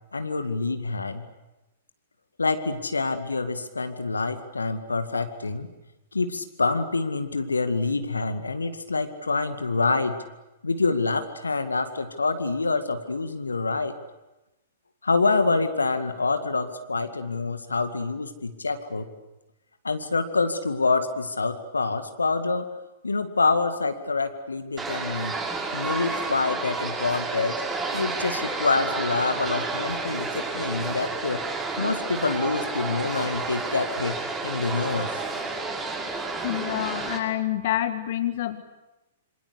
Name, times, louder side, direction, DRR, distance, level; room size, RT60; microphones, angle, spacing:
voice 1, 0.1-1.2 2.4-5.7 6.1-10.2 10.6-13.9 15.0-19.1 19.8-22.7 23.0-25.4 25.7-27.6 27.9-31.4 31.8-35.2, left 3 dB, 75° left, 9 dB, 2.1 m, -26 dB
sound 1, 24.8-37.2, right 3 dB, 15° right, 5.9 m, -31 dB
voice 2, 36.4-38.6, left 12 dB, 50° left, 9 dB, 1.7 m, -27 dB
27.0 x 25.5 x 8.2 m, 1.0 s
figure-of-eight pair, 105°, 0 cm